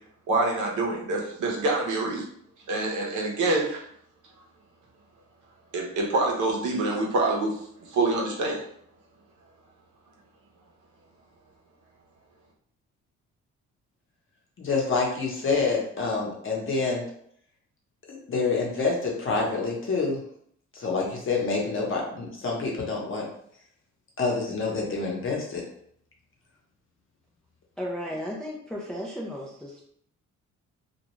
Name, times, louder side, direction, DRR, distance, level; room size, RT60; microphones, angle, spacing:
voice 1, 0.3-2.2 2.7-3.8 5.7-7.6 7.9-8.6, right 2 dB, 75° right, -1 dB, 0.8 m, -26 dB
voice 2, 14.6-17.0 18.1-20.2 20.7-23.3 24.2-25.6, left 4 dB, 45° left, -2 dB, 0.9 m, -27 dB
voice 3, 27.8-29.9, equal, 5° left, -2 dB, 0.4 m, -34 dB
2.4 x 2.2 x 3.0 m, 0.65 s
cardioid pair, 90°, 30 cm